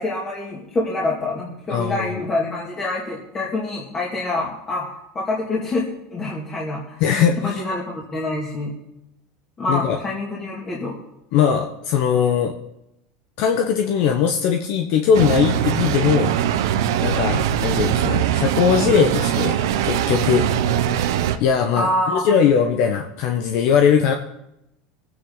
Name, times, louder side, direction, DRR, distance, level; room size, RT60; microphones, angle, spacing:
voice 1, 0.0-7.0 7.4-8.7 9.6-11.0 21.8-22.3, left 2 dB, 25° left, -4 dB, 2.5 m, -26 dB
voice 2, 1.7-2.2 7.0-7.6 9.7-10.0 11.3-12.5 13.4-16.3 17.0-19.6 19.8-20.5 21.4-24.1, left 7 dB, 60° left, 4 dB, 1.2 m, -20 dB
sound 1, 15.1-21.4, right 10 dB, 90° right, 1.0 m, -21 dB
23.5 x 9.6 x 4.0 m, 0.86 s
supercardioid pair, 140°, 2 cm